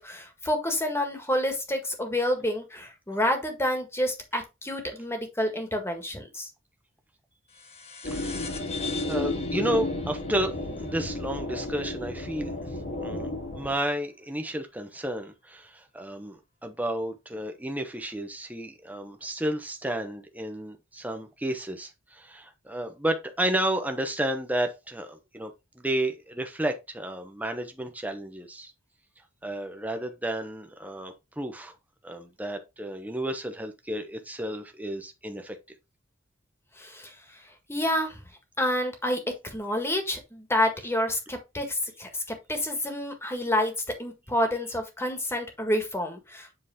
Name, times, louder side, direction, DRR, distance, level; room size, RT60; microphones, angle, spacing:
voice 1, 0.0-6.5 36.8-38.2 38.6-43.7 44.0-46.5, left 1 dB, 15° left, 1.7 m, -29 dB
sound 1, 7.5-12.4, left 6 dB, 30° left, 1.1 m, -42 dB
sound 2, 8.0-13.7, left 1 dB, 60° left, 2.2 m, -32 dB
voice 2, 9.1-12.5 13.0-13.3 13.5-28.7 29.4-31.7 32.0-35.6, right 1 dB, 10° right, 0.9 m, -32 dB
7.8 x 4.0 x 3.6 m
head